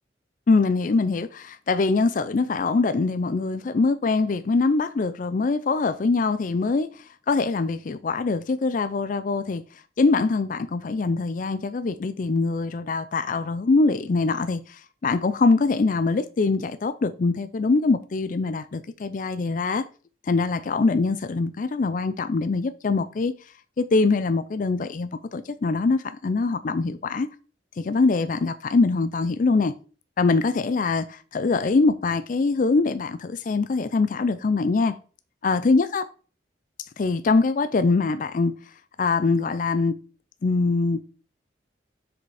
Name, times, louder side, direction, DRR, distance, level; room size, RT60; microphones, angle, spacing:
voice 1, 0.5-9.6 10.0-19.9 20.2-23.3 23.8-27.3 27.8-29.7 30.2-34.9 35.4-36.0 36.8-38.5 39.0-39.9 40.4-41.0, left 3 dB, 45° left, 0.4 m, -23 dB
6.5 x 5.0 x 4.8 m
head